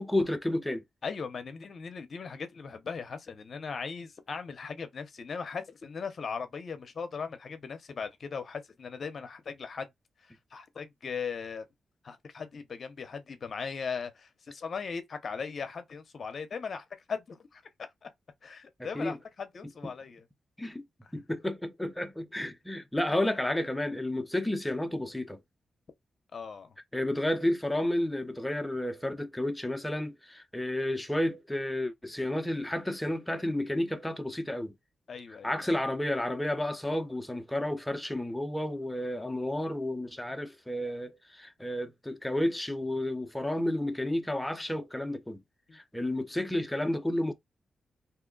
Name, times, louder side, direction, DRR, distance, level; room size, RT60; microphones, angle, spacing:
voice 1, 0.0-0.8 18.9-19.2 19.8-19.9 20.6-20.8 21.1-25.4 26.9-34.7 35.4-45.4 45.7-47.3, left 1 dB, 10° left, 0.6 m, -31 dB
voice 2, 1.0-9.9 10.5-11.6 12.0-17.6 18.0-18.1 18.4-20.2 26.3-26.8 35.1-35.7 45.7-45.8, left 5 dB, 55° left, 0.7 m, -38 dB
2.8 x 2.1 x 3.8 m
cardioid pair, 85°, 0 cm